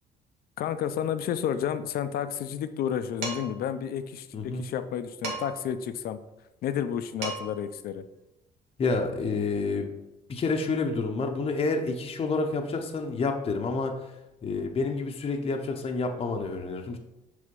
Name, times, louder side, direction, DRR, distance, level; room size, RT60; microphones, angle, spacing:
voice 1, 0.6-6.2 6.6-8.0, left 9 dB, 65° left, 11 dB, 0.5 m, -31 dB
Dishes pots and pans, 3.2-3.7 5.2-5.7 6.9-7.0 7.2-7.7, right 3 dB, 80° right, 1.8 m, -35 dB
voice 2, 4.3-4.6 8.8-9.9 10.3-14.1 14.4-17.0, left 3 dB, 35° left, 3 dB, 0.8 m, -29 dB
6.5 x 3.5 x 5.3 m, 0.93 s
cardioid pair, 110°, 17 cm